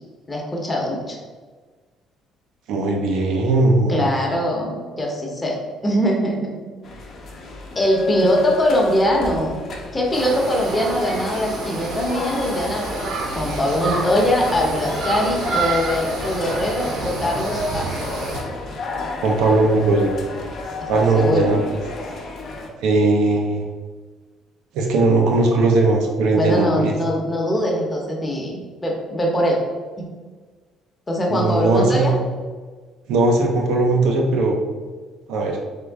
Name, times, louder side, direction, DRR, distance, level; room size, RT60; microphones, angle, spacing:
voice 1, 0.3-1.2 3.9-5.6 5.8-6.6 7.7-9.6 9.9-18.0 20.8-21.5 26.3-29.6 30.0-30.1 31.1-32.2, equal, 15° left, -1 dB, 0.9 m, -22 dB
voice 2, 2.7-4.0 19.2-20.1 20.9-21.8 22.8-23.6 24.7-27.0 31.3-32.1 33.1-34.6 35.3-35.6, right 2 dB, 85° right, 1 dB, 0.7 m, -18 dB
sound 1, 6.8-22.7, left 2 dB, 50° left, 0.8 m, -32 dB
sound 2, 10.1-18.4, right 3 dB, 55° right, 0.9 m, -28 dB
3.7 x 3.5 x 3.5 m, 1.4 s
cardioid pair, 135°, 0 cm